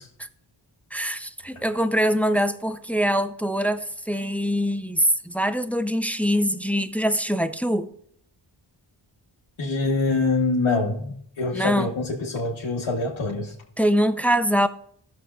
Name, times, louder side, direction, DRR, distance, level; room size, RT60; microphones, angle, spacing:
voice 1, 0.9-7.9 11.5-11.9 13.8-14.7, equal, 5° left, 0.5 m, -23 dB
voice 2, 9.6-13.5, left 3 dB, 70° left, 1.2 m, -25 dB
17.0 x 6.5 x 2.4 m
wide cardioid pair, 55°, 49 cm